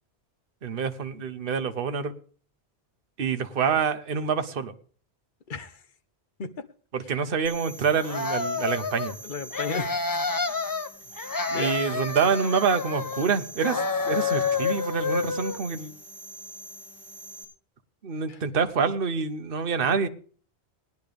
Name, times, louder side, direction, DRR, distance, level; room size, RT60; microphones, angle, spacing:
voice 1, 0.6-2.1 3.2-4.7 6.9-9.1 11.5-15.9 18.0-20.1, right 6 dB, 55° right, 1.1 m, -26 dB
voice 2, 5.5-5.8 6.4-6.6 9.2-10.1 11.5-11.9 18.3-18.4, left 4 dB, 50° left, 1.0 m, -34 dB
sound 1, 7.4-17.4, right 1 dB, ahead, 4.9 m, -44 dB
sound 2, 8.0-9.1 9.5-10.9 11.2-13.3 13.6-15.6, left 5 dB, 25° left, 0.5 m, -29 dB
19.0 x 10.5 x 3.4 m
omnidirectional pair, 1.1 m